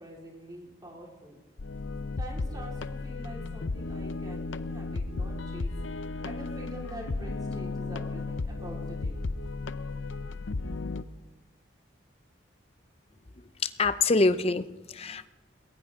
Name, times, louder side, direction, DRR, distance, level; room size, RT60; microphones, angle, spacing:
voice 1, 0.0-1.4 2.2-5.7 6.2-9.2, equal, 20° right, -2 dB, 4.3 m, -45 dB
sound 1, 1.6-11.0, left 3 dB, 85° left, 0.7 m, -34 dB
voice 2, 13.6-15.3, left 3 dB, 30° left, 13 dB, 0.6 m, -25 dB
21.0 x 18.0 x 3.8 m, 1.1 s
head